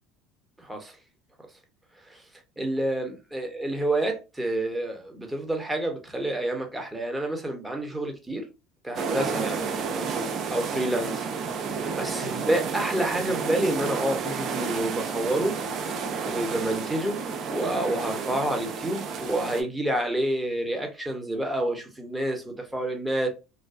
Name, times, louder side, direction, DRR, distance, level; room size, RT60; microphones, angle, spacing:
voice 1, 0.6-1.0 2.1-2.2 2.6-8.5 8.8-9.6 9.9-10.2 10.5-11.3 12.0-15.6 16.3-23.3, right 1 dB, 10° right, 0.9 m, -28 dB
sound 1, 9.0-19.6, right 5 dB, 50° right, 0.5 m, -31 dB
2.5 x 2.2 x 2.4 m
hypercardioid pair, 70°, 0 cm